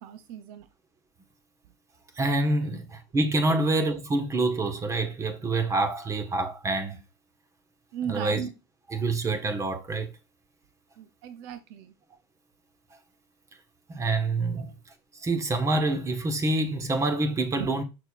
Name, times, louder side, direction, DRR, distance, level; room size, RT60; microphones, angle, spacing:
voice 1, 0.0-0.7 3.5-3.6 7.9-8.5 11.0-11.9 14.6-14.7 17.6-17.7, right 9 dB, 75° right, 0.7 m, -37 dB
voice 2, 2.2-7.0 8.1-8.5 8.9-10.1 13.9-14.7 15.1-17.8, right 2 dB, 20° right, 1.4 m, -26 dB
6.5 x 6.4 x 2.4 m
supercardioid pair, 135°, 13 cm